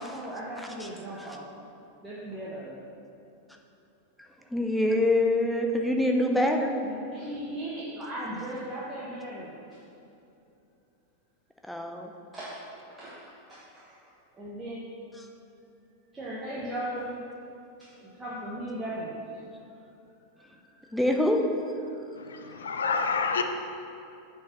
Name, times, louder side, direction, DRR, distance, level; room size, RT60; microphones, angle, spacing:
voice 1, 0.0-1.4 2.0-2.8 6.8-9.5 12.3-12.6 12.9-13.2 13.5-13.8 14.3-14.8 16.1-17.2 17.9-19.1 22.4-22.6, right 1 dB, 15° right, -8 dB, 1.4 m, -37 dB
voice 2, 0.6-1.4 4.2-6.8 11.6-12.1 15.2-15.3 20.9-21.4, left 1 dB, 5° left, 2 dB, 0.8 m, -26 dB
voice 3, 22.2-23.4, left 5 dB, 65° left, 6 dB, 0.5 m, -28 dB
8.3 x 4.5 x 6.1 m, 2.7 s
figure-of-eight pair, 90°, 0 cm